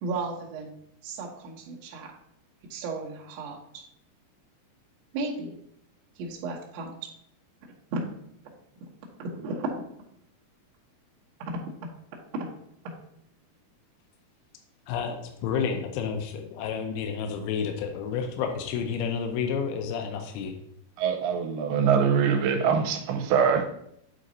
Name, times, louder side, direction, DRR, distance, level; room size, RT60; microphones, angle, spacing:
voice 1, 0.0-0.7 1.0-2.1 2.7-3.8 5.1-5.5 6.2-7.1 7.6-8.0 8.8-8.9 9.2-9.8 11.4-11.6 12.3-12.5 12.8-12.9, right 3 dB, 70° right, 1.6 m, -34 dB
voice 2, 14.9-20.5, left 6 dB, 85° left, 2.6 m, -30 dB
voice 3, 21.0-23.7, right 7 dB, 90° right, 2.7 m, -23 dB
8.3 x 3.9 x 3.9 m
omnidirectional pair, 4.5 m